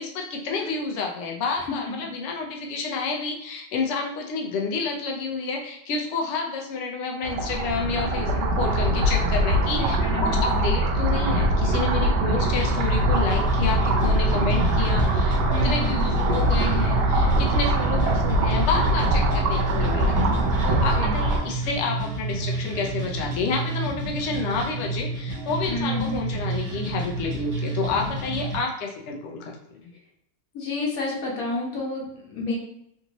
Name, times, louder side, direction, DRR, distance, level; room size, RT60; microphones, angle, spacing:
voice 1, 0.0-29.9, left 4 dB, 80° left, 1 dB, 0.6 m, -29 dB
sound 1, 7.2-21.4, right 1 dB, 75° right, 1.2 m, -22 dB
voice 2, 9.8-10.7 12.0-12.8 15.5-16.0 20.9-21.2 25.7-26.1 30.5-32.6, left 2 dB, 60° left, -3 dB, 1.2 m, -31 dB
sound 2, 12.6-28.6, right 2 dB, 55° right, 1.5 m, -30 dB
3.5 x 2.7 x 2.9 m, 0.77 s
omnidirectional pair, 1.9 m